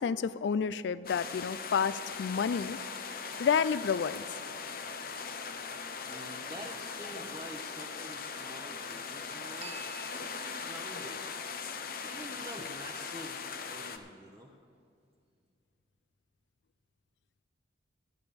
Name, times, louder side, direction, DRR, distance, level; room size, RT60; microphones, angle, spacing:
voice 1, 0.0-2.8 3.4-4.4, left 6 dB, 65° left, 15 dB, 0.3 m, -30 dB
sound 1, 1.0-14.0, left 5 dB, 50° left, 0.7 m, -40 dB
sound 2, 2.5-5.4 9.6-13.2, right 4 dB, 35° right, 0.4 m, -54 dB
voice 2, 6.1-9.9 10.3-11.3 12.0-14.5, equal, 15° right, -2 dB, 0.8 m, -47 dB
13.0 x 10.5 x 5.2 m, 2.3 s
head